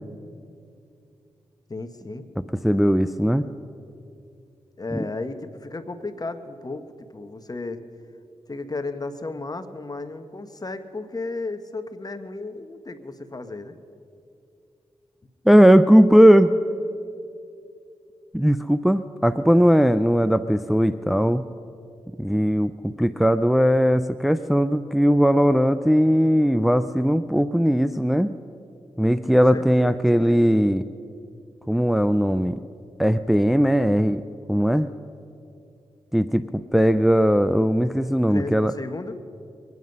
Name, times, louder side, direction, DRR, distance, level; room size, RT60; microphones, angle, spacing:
voice 1, 1.7-2.3 4.8-7.8 8.5-13.7 29.5-30.3 38.3-39.2, left 3 dB, 35° left, 9 dB, 1.2 m, -34 dB
voice 2, 2.6-3.5 4.9-5.0 15.5-16.5 18.3-21.4 22.2-28.3 29.0-30.9 31.7-32.6 33.0-34.2 34.5-34.9 36.1-38.7, equal, ahead, 12 dB, 0.4 m, -18 dB
23.0 x 9.6 x 5.4 m, 2.6 s
cardioid pair, 45°, 11 cm